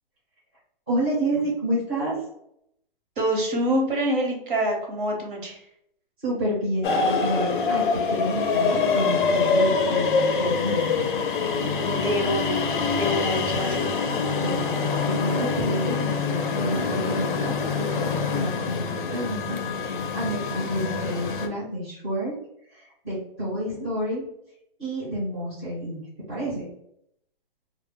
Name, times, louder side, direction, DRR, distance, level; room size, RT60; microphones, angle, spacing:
voice 1, 0.9-2.1 6.2-11.1 14.3-22.3 22.7-24.2 24.8-26.0 26.3-26.6, equal, 10° right, -10 dB, 0.6 m, -29 dB
voice 2, 3.2-5.7 9.6-10.0 11.9-12.6 12.9-14.0 23.7-23.9, equal, 60° right, 0 dB, 0.9 m, -26 dB
sound 1, 6.8-21.5, left 4 dB, 60° left, 0.4 m, -25 dB
2.0 x 2.0 x 3.6 m, 0.73 s
hypercardioid pair, 175°, 29 cm